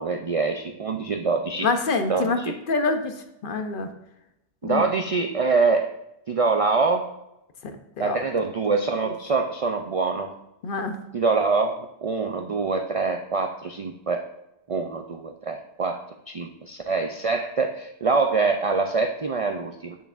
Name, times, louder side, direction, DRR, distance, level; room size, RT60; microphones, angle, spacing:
voice 1, 0.0-1.7 2.1-2.5 4.6-5.9 6.3-7.1 8.0-10.3 11.1-14.2 14.7-20.0, right 4 dB, 55° right, 4 dB, 0.4 m, -25 dB
voice 2, 1.6-3.1 3.4-3.9 4.6-4.8 7.6-7.7 8.0-8.2 10.6-11.0, left 3 dB, 55° left, 7 dB, 0.8 m, -26 dB
8.3 x 7.0 x 2.5 m, 0.87 s
omnidirectional pair, 1.1 m